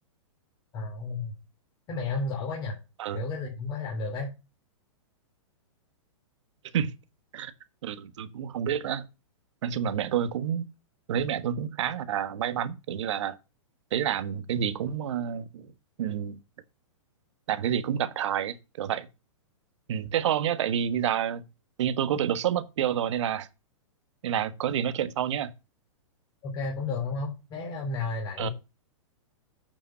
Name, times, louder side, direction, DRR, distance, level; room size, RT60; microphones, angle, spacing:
voice 1, 0.7-1.3 1.9-2.7 3.1-4.3 26.4-28.5, left 3 dB, 25° left, 2.9 m, -32 dB
voice 2, 7.8-9.0 9.6-10.6 11.1-13.4 13.9-15.7 16.0-16.4 17.5-19.1 19.9-21.4 21.8-23.5 24.2-25.5 28.4-28.5, right 9 dB, 65° right, 1.3 m, -28 dB
8.9 x 5.5 x 5.6 m
hypercardioid pair, 150°, 17 cm